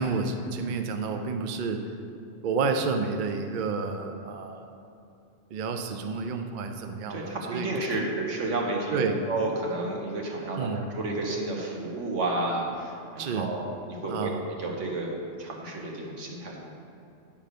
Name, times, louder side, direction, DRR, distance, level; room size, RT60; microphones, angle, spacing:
voice 1, 0.0-1.8 2.4-4.7 5.5-7.7 8.9-9.2 10.6-10.8 13.2-13.5 14.1-14.4, right 4 dB, 55° right, 5 dB, 0.5 m, -30 dB
voice 2, 7.1-14.3 14.6-15.1 15.4-16.6, right 2 dB, 75° right, -1 dB, 1.5 m, -31 dB
8.8 x 3.6 x 6.6 m, 2.7 s
omnidirectional pair, 1.3 m